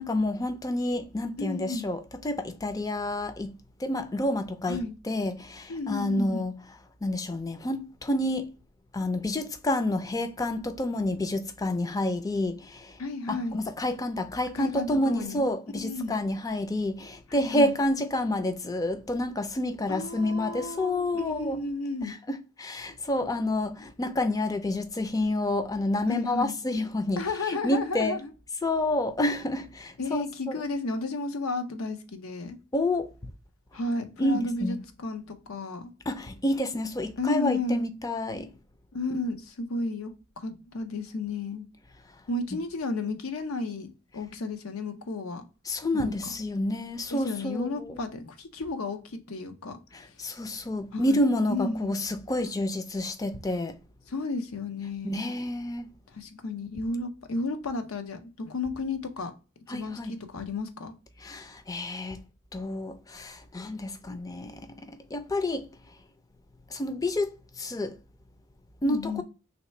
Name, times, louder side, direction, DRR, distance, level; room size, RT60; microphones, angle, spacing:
voice 1, 0.0-3.5 3.8-4.8 5.0-6.5 7.0-8.5 8.9-13.0 13.3-21.6 22.0-22.2 22.6-27.2 27.5-28.2 28.6-30.5 32.7-33.1 34.2-34.8 36.1-38.5 45.7-48.0 49.9-53.8 55.0-55.9 59.7-60.2 61.2-62.2 62.5-65.6 66.7-67.9 68.8-69.2, left 1 dB, 15° left, 0.4 m, -29 dB
voice 2, 1.4-1.9 4.7-5.0 5.7-6.4 13.0-13.6 14.5-15.5 15.7-16.2 17.3-17.7 19.9-22.2 26.1-26.6 27.2-28.3 30.0-32.6 33.7-35.9 37.2-37.9 38.9-41.7 42.3-45.4 45.9-46.1 47.1-49.8 50.9-51.2 51.5-52.0 54.1-55.3 56.1-59.3 59.7-60.9 68.8-69.2, left 3 dB, 90° left, 0.7 m, -33 dB
3.2 x 2.9 x 4.2 m
head